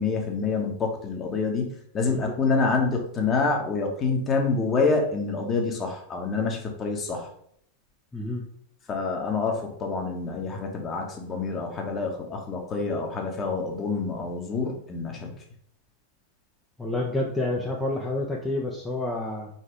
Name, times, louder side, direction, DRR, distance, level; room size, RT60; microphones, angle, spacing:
voice 1, 0.0-7.3 8.9-15.3, left 4 dB, 25° left, 2 dB, 1.4 m, -27 dB
voice 2, 8.1-8.4 16.8-19.5, left 2 dB, 10° left, -2 dB, 0.9 m, -29 dB
4.8 x 4.2 x 4.9 m, 0.66 s
figure-of-eight pair, 90°, 0 cm